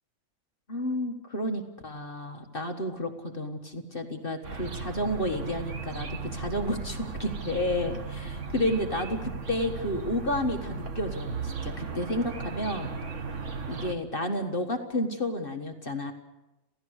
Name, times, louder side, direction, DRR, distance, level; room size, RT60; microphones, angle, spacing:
voice 1, 0.7-12.9 13.7-16.1, left 1 dB, 30° left, 4 dB, 1.5 m, -31 dB
sound 1, 4.4-13.9, right 4 dB, 40° right, 1.6 m, -36 dB
28.0 x 16.0 x 6.4 m, 0.98 s
omnidirectional pair, 2.1 m